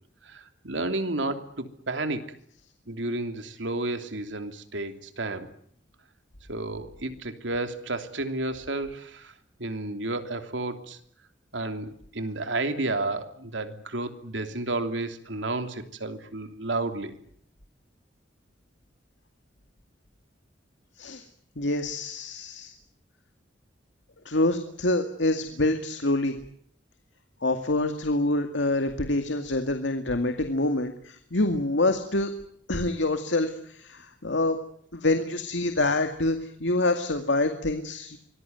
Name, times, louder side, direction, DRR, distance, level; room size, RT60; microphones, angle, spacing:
voice 1, 0.2-2.3 2.9-5.5 6.5-9.3 9.6-11.0 11.5-17.2, right 2 dB, 90° right, 7 dB, 3.0 m, -31 dB
voice 2, 21.6-22.7 24.3-26.4 27.4-32.3 32.7-34.6 34.9-38.2, left 2 dB, 80° left, 6 dB, 2.2 m, -26 dB
25.0 x 20.0 x 9.4 m, 0.66 s
head